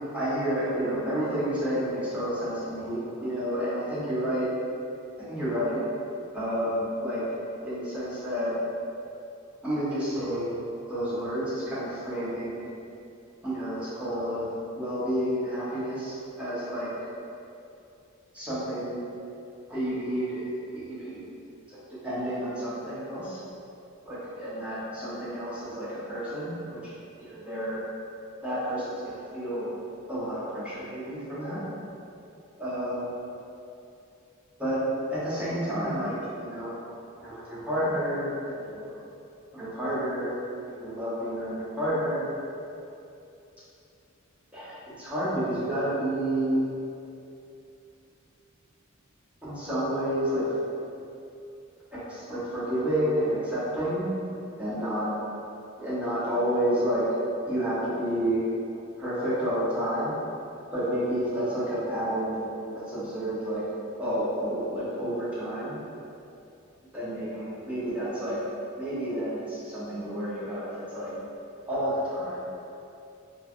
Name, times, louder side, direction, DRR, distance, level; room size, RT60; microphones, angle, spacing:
voice 1, 0.1-4.5 5.3-5.8 6.3-7.2 7.6-8.5 9.6-12.7 13.4-14.5 14.7-16.9 18.3-19.0 19.7-21.2 21.7-21.8 22.0-23.4 24.1-26.9 27.2-27.8 28.4-29.7 30.1-31.6 32.6-33.1 34.6-34.8 35.1-36.8 37.2-38.3 38.6-39.0 39.5-40.3 40.7-42.2 44.5-46.6 49.4-50.4 51.9-54.1 54.6-55.0 55.8-57.0 57.5-58.4 59.0-60.1 60.7-63.6 64.0-65.8 66.9-68.4 68.7-71.1 71.7-72.4, equal, 5° right, -12 dB, 0.8 m, -30 dB
3.2 x 2.2 x 2.4 m, 2.7 s
head